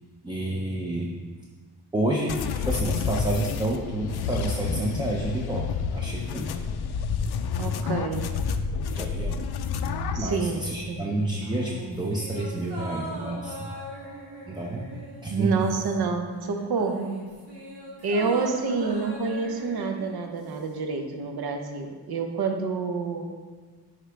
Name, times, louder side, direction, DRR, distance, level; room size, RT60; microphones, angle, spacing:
voice 1, 0.2-1.1 1.9-5.7 5.9-6.5 8.9-9.3 10.2-13.7 14.5-14.8 15.2-15.6, right 1 dB, 10° right, -1 dB, 0.4 m, -29 dB
sound 1, 2.3-10.3, left 5 dB, 75° left, 0.5 m, -29 dB
voice 2, 7.6-8.2 10.1-11.0 15.3-17.1 18.0-23.3, right 4 dB, 70° right, 4 dB, 0.9 m, -28 dB
sound 2, 11.4-16.2 16.4-20.8 21.1-21.2, right 1 dB, 85° right, 1.7 m, -41 dB
11.0 x 3.8 x 3.4 m, 1.5 s
wide cardioid pair, 160°, 39 cm